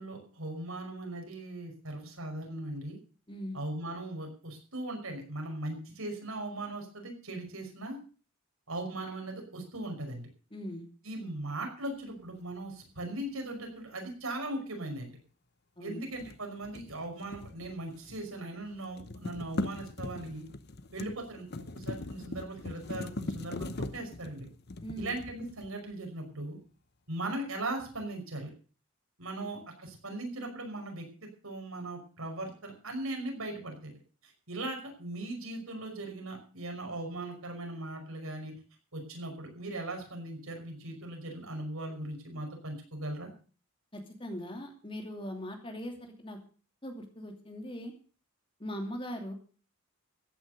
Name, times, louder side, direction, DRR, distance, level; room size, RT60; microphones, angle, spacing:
voice 1, 0.0-3.0 3.5-8.0 8.7-10.3 11.0-15.2 15.8-20.4 20.9-24.5 25.0-26.6 27.1-28.5 29.2-31.1 31.4-33.9 34.2-38.5 38.9-43.3, right 2 dB, 75° right, 3 dB, 5.6 m, -39 dB
voice 2, 3.3-3.6 10.5-10.9 15.8-16.0 24.8-25.1 29.4-29.5 43.9-46.4 46.8-47.9 48.6-49.3, equal, 25° left, 4 dB, 2.8 m, -40 dB
sound 1, 16.1-18.4 18.6-25.9, left 2 dB, 50° left, 0.9 m, -40 dB
14.5 x 9.7 x 6.7 m, 0.39 s
head